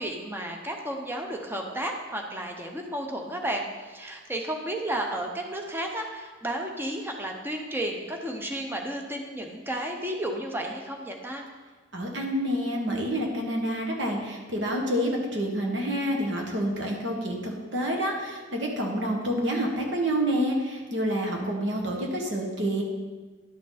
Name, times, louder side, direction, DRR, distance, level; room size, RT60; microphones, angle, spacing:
voice 1, 0.0-11.4, right 1 dB, 10° right, 2 dB, 0.9 m, -32 dB
voice 2, 11.9-22.8, equal, 65° right, 0 dB, 1.6 m, -28 dB
11.0 x 6.1 x 4.2 m, 1.3 s
head